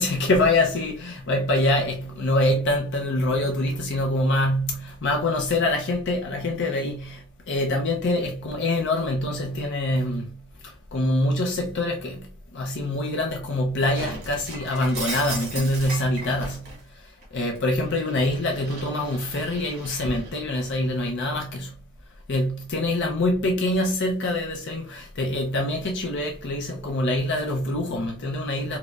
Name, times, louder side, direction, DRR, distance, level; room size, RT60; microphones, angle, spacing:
voice 1, 0.0-12.3 12.5-21.8 22.3-28.8, left 1 dB, 50° left, 0.5 m, -25 dB
Shatter, 13.9-16.8 17.2-20.4, right 2 dB, 45° right, 1.3 m, -37 dB
4.3 x 2.1 x 2.3 m
head